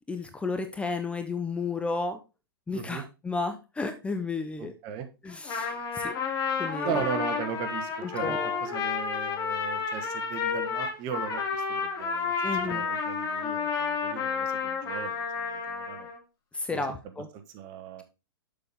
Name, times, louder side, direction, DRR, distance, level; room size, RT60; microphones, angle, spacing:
voice 1, 0.1-2.2 2.7-4.7 5.2-6.1 6.6-7.1 8.0-8.6 12.4-12.9 16.5-17.3, left 3 dB, 10° left, 7 dB, 0.6 m, -32 dB
voice 2, 2.7-3.0 4.6-5.1 6.8-11.4 11.7-12.3 12.7-16.1 16.7-16.8 17.5-18.0, right 8 dB, 40° right, 8 dB, 1.2 m, -37 dB
Trumpet, 5.3-16.2, left 5 dB, 30° left, 2.2 m, -31 dB
6.8 x 5.8 x 3.5 m, 0.28 s
hypercardioid pair, 120°, 12 cm